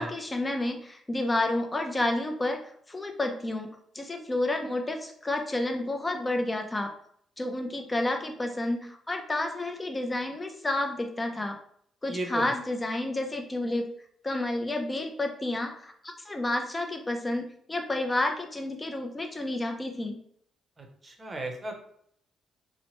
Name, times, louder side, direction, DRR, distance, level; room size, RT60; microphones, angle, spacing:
voice 1, 0.0-2.6 2.9-6.9 7.4-11.6 12.0-13.9 14.2-20.2, left 2 dB, 20° left, 4 dB, 0.5 m, -30 dB
voice 2, 12.1-12.4 20.8-21.8, right 1 dB, 30° right, 3 dB, 0.7 m, -35 dB
2.8 x 2.1 x 3.0 m, 0.65 s
cardioid pair, 90°, 0 cm